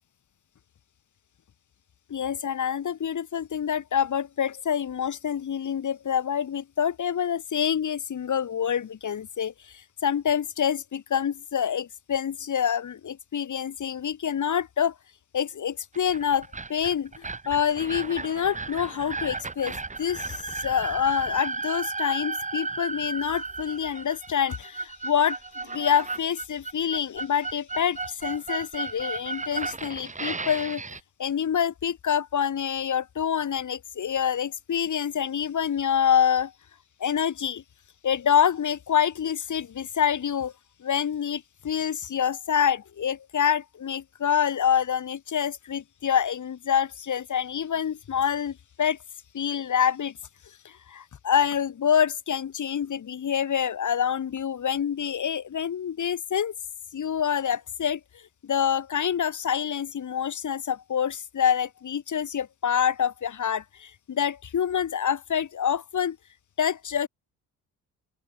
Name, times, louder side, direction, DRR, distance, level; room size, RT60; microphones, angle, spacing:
voice 1, 2.1-9.5 10.0-14.9 15.3-30.8 31.2-36.5 37.0-37.6 38.0-40.5 40.8-49.0 49.3-50.1 50.9-56.5 56.9-58.0 58.4-66.2 66.6-67.1, left 8 dB, 45° left, 1.9 m, -26 dB
sound 1, 15.9-31.0, right 4 dB, 20° right, 1.2 m, -34 dB
open air
hypercardioid pair, 55°, 40 cm